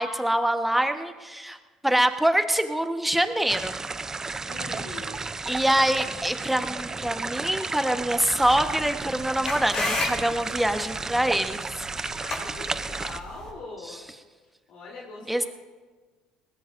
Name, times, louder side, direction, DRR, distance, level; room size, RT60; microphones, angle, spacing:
voice 1, 0.0-1.6 1.8-3.7 5.5-11.6 15.3-15.5, right 1 dB, 5° right, 7 dB, 1.2 m, -24 dB
sound 1, 3.5-13.2, right 4 dB, 25° right, 0.6 m, -33 dB
voice 2, 4.5-5.3 12.2-14.0 14.7-15.5, left 3 dB, 60° left, -4 dB, 3.5 m, -41 dB
sound 2, 8.4-13.5, left 2 dB, 40° left, 6.1 m, -33 dB
21.5 x 19.0 x 2.6 m, 1.4 s
hypercardioid pair, 65°, 2 cm